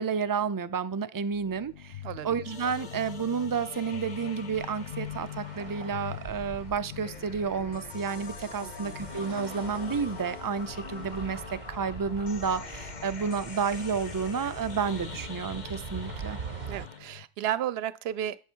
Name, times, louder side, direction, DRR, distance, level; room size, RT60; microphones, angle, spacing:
voice 1, 0.0-16.4, right 6 dB, 30° right, 0.4 m, -31 dB
sound 1, 1.3-17.3, left 11 dB, 75° left, 1.0 m, -44 dB
sound 2, 2.4-17.0, left 5 dB, 45° left, 1.0 m, -45 dB
sound 3, 4.5-16.9, right 6 dB, 45° right, 0.9 m, -44 dB
voice 2, 8.6-8.9 16.7-18.4, right 11 dB, 75° right, 0.8 m, -33 dB
11.5 x 6.5 x 4.5 m
omnidirectional pair, 1.1 m